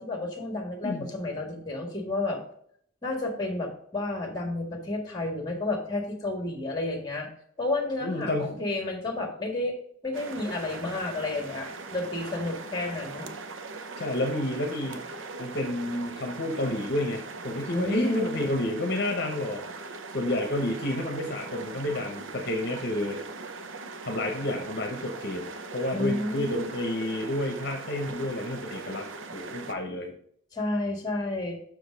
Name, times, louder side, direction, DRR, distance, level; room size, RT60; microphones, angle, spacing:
voice 1, 0.0-2.4 3.0-7.3 7.6-9.7 10.0-13.3 17.7-18.5 25.9-26.7 30.5-31.6, left 2 dB, 20° left, 2 dB, 1.6 m, -31 dB
voice 2, 8.0-8.6 14.0-15.0 15.4-19.6 20.1-23.2 24.0-30.1, left 1 dB, 55° left, 3 dB, 0.9 m, -30 dB
sound 1, 10.1-29.7, right 3 dB, 70° right, 0.7 m, -40 dB
6.1 x 5.1 x 5.1 m, 0.64 s
head